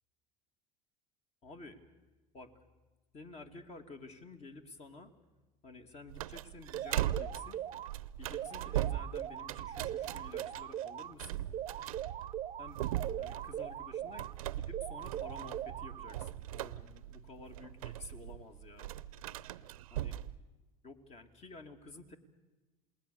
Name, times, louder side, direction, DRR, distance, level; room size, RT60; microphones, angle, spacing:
voice 1, 1.4-1.8 2.3-2.5 3.1-5.1 5.6-7.6 8.2-11.4 12.6-12.8 13.2-14.3 14.6-18.9 19.9-20.2 20.8-22.2, left 3 dB, 35° left, 6 dB, 2.7 m, -51 dB
sound 1, 6.1-20.4, right 13 dB, 85° right, 0.7 m, -40 dB
sound 2, 6.7-7.9 8.3-11.1 11.5-14.3 14.7-16.3, right 11 dB, 35° right, 0.7 m, -41 dB
28.0 x 20.0 x 7.0 m, 1.2 s
hypercardioid pair, 85°, 18 cm